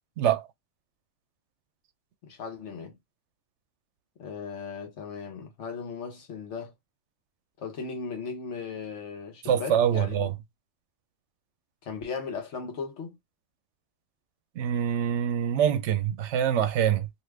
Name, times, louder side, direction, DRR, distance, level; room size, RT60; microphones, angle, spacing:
voice 1, 2.2-2.9 4.2-6.7 7.6-10.3 11.8-13.2, left 5 dB, 75° left, 1.2 m, -37 dB
voice 2, 9.4-10.3 14.6-17.1, right 9 dB, 75° right, 0.8 m, -25 dB
2.7 x 2.3 x 3.3 m
omnidirectional pair, 1.2 m